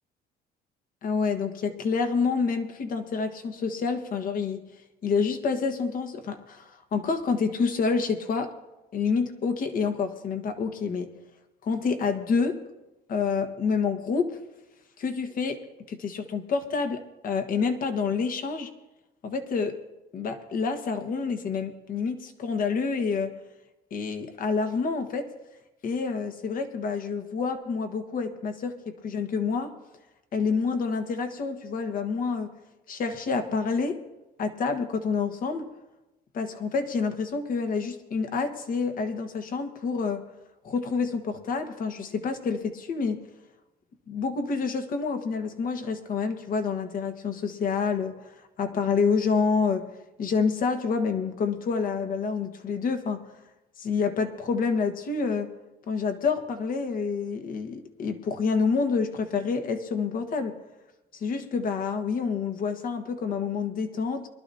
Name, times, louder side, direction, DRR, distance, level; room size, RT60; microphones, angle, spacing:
voice 1, 1.0-4.6 5.0-8.5 8.9-11.1 11.6-12.6 13.1-14.4 15.0-15.6 15.9-18.7 19.2-19.8 20.1-23.3 23.9-25.3 25.8-29.7 30.3-32.5 32.9-34.0 34.4-35.7 36.3-40.3 40.6-43.2 44.1-49.9 50.2-53.2 53.8-55.5 55.9-60.6 61.2-64.3, left 5 dB, 55° left, 7 dB, 1.4 m, -28 dB
23.5 x 12.0 x 2.8 m, 1.0 s
cardioid pair, 110°, 17 cm